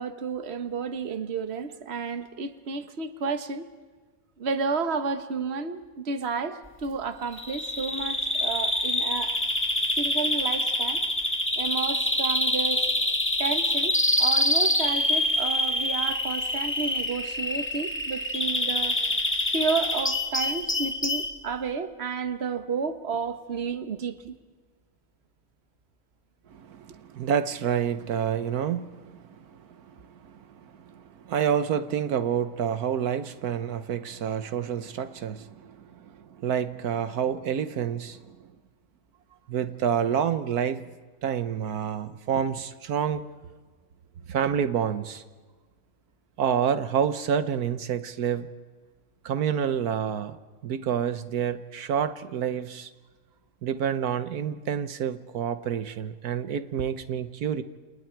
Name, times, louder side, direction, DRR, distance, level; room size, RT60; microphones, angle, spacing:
voice 1, 0.0-3.7 4.4-9.4 10.0-11.0 11.6-12.8 13.4-19.0 19.5-24.3, right 5 dB, 45° right, 10 dB, 1.5 m, -31 dB
Bird vocalization bird call bird song, 7.3-21.3, left 1 dB, 10° left, 1.8 m, -26 dB
voice 2, 26.5-38.5 39.5-40.8 41.2-43.2 44.3-45.2 46.4-48.5 49.2-50.4 50.6-52.9 53.6-57.6, right 8 dB, 80° right, 12 dB, 1.4 m, -28 dB
29.5 x 29.0 x 4.6 m, 1.4 s
omnidirectional pair, 1.6 m